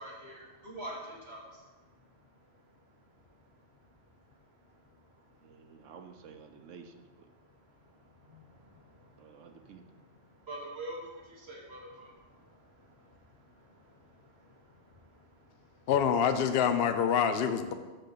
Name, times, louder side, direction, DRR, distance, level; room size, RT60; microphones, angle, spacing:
voice 1, 0.0-5.9 6.5-6.7 7.3-15.9, right 1 dB, 60° right, -2 dB, 1.6 m, -49 dB
voice 2, 5.4-7.3 9.2-9.8, right 6 dB, 80° right, 6 dB, 1.1 m, -52 dB
voice 3, 15.9-17.7, left 7 dB, 60° left, 8 dB, 0.7 m, -26 dB
6.7 x 5.9 x 6.6 m, 1.3 s
omnidirectional pair, 1.3 m